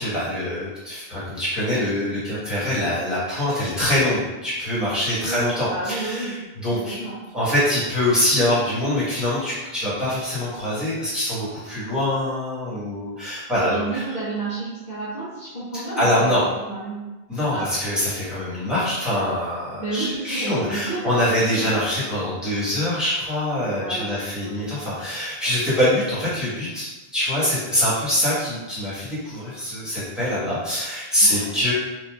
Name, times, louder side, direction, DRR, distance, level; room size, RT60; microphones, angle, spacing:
voice 1, 0.0-6.3 6.6-7.0 7.3-14.0 16.0-16.4 17.3-26.8 27.1-31.7, left 1 dB, ahead, -12 dB, 1.1 m, -24 dB
voice 2, 5.2-6.4 6.7-7.2 13.7-17.1 17.5-17.7 19.8-21.9 23.8-24.1 24.4-24.7 31.2-31.5, right 3 dB, 55° left, -9 dB, 0.8 m, -31 dB
3.1 x 2.4 x 2.3 m, 1.1 s
omnidirectional pair, 1.0 m